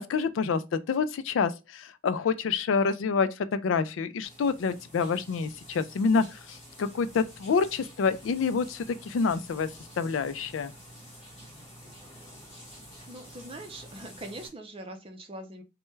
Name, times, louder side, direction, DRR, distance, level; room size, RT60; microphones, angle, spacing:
voice 1, 0.1-0.6 0.9-9.7 10.0-10.7, left 5 dB, 85° left, 0.4 m, -27 dB
sound 1, 4.2-14.5, equal, 35° left, 1.4 m, -49 dB
voice 2, 13.1-15.6, right 1 dB, 30° right, 0.5 m, -42 dB
3.2 x 2.2 x 3.2 m
head